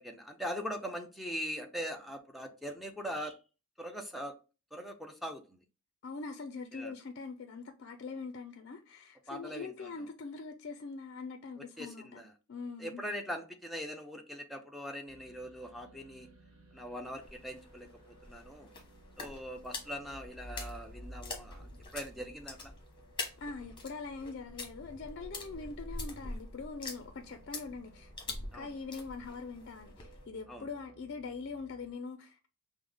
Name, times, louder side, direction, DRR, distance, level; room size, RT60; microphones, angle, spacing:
voice 1, 0.0-3.4 3.8-4.3 4.7-5.6 6.7-6.9 9.3-9.9 11.8-12.3 12.8-16.3 16.7-18.7 19.2-21.7 21.9-22.7 28.5-28.7 30.5-30.7, equal, ahead, 0.5 m, -41 dB
voice 2, 6.0-12.2 12.5-13.0 23.4-28.1 28.5-32.5, left 4 dB, 50° left, 0.4 m, -43 dB
sound 1, 15.1-31.9, right 1 dB, 75° right, 1.1 m, -60 dB
sound 2, 17.2-30.2, left 3 dB, 20° left, 0.9 m, -45 dB
sound 3, 20.0-22.9, equal, 50° right, 0.9 m, -49 dB
5.3 x 2.1 x 3.3 m
head